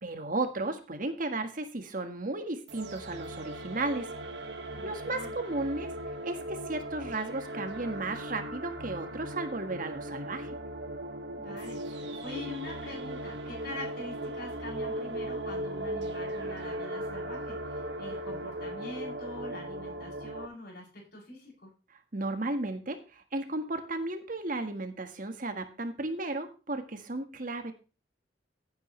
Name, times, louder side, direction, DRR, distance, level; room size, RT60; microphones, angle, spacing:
voice 1, 0.0-4.1 4.8-5.9 6.2-10.5 22.1-27.7, right 2 dB, 45° right, 7 dB, 1.6 m, -34 dB
sound 1, 2.7-20.5, right 1 dB, 65° right, 1.8 m, -38 dB
voice 2, 4.7-5.3 11.4-21.7, left 2 dB, 55° left, -2 dB, 7.9 m, -44 dB
16.0 x 9.0 x 3.3 m, 0.32 s
head